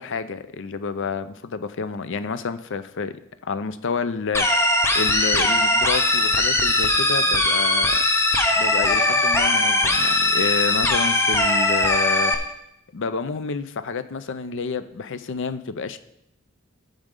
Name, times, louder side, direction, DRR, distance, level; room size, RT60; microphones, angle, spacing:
voice 1, 0.0-3.2 3.4-4.6 4.9-8.0 8.6-12.3 12.9-16.0, left 5 dB, 60° left, 12 dB, 0.5 m, -29 dB
sound 1, 4.3-12.3, left 2 dB, 10° left, 0.8 m, -20 dB
14.5 x 5.2 x 3.8 m, 0.80 s
head